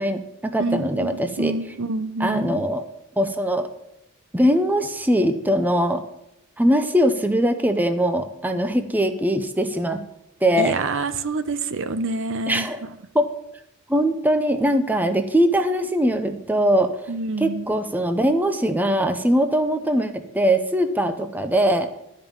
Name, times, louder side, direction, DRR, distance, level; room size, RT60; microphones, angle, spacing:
voice 1, 0.0-1.5 2.2-2.9 3.2-3.7 4.3-6.0 6.6-10.0 10.4-10.8 12.5-12.8 13.1-13.3 13.9-16.9 17.4-21.9, equal, 10° right, 7 dB, 0.6 m, -21 dB
voice 2, 0.6-2.5 10.6-12.7 17.1-17.7, right 3 dB, 60° right, 11 dB, 0.7 m, -27 dB
12.5 x 5.3 x 7.4 m, 0.83 s
head